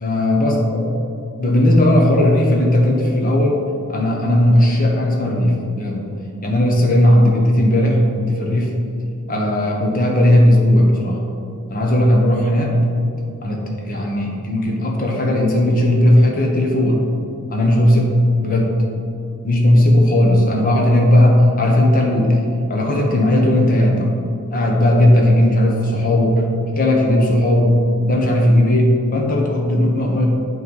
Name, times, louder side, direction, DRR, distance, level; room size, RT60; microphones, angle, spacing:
voice 1, 0.0-0.8 1.4-3.6 3.9-6.0 6.4-8.7 9.3-11.2 11.7-12.7 13.4-17.0 17.5-18.2 18.4-18.7 19.4-22.4 22.7-24.1 24.5-26.4 26.8-30.3, left 1 dB, 40° left, 0 dB, 1.0 m, -16 dB
7.5 x 3.2 x 5.4 m, 2.6 s
head